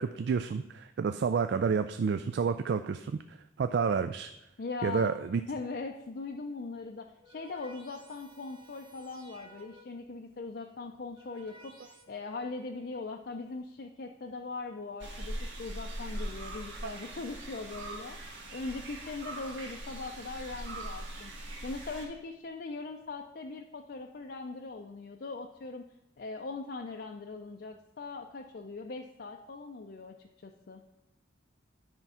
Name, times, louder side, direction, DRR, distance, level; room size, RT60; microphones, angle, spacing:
voice 1, 0.0-4.3 4.8-5.4 16.8-17.0, right 6 dB, 60° right, 10 dB, 0.3 m, -30 dB
voice 2, 4.6-5.1 5.5-25.9 26.2-30.8, left 3 dB, 55° left, 3 dB, 0.4 m, -40 dB
sound 1, 7.0-10.1 10.9-12.0, right 2 dB, 25° right, 1.1 m, -56 dB
sound 2, 15.0-22.0, right 1 dB, 75° right, 1.8 m, -41 dB
9.7 x 4.5 x 5.6 m, 0.87 s
head